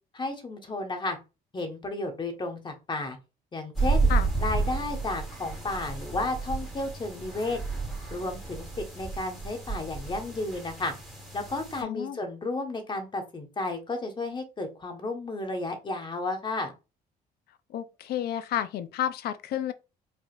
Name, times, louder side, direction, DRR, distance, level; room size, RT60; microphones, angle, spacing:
voice 1, 0.1-1.2 1.5-3.2 3.5-4.1 4.4-7.6 8.1-10.9 11.3-16.7, left 2 dB, 30° left, 1.4 m, -32 dB
sound 1, 3.7-11.8, right 3 dB, ahead, 2.5 m, -31 dB
voice 2, 11.8-12.2 17.7-19.7, left 11 dB, 70° left, 0.6 m, -31 dB
4.9 x 4.0 x 2.5 m
cardioid pair, 110°, 17 cm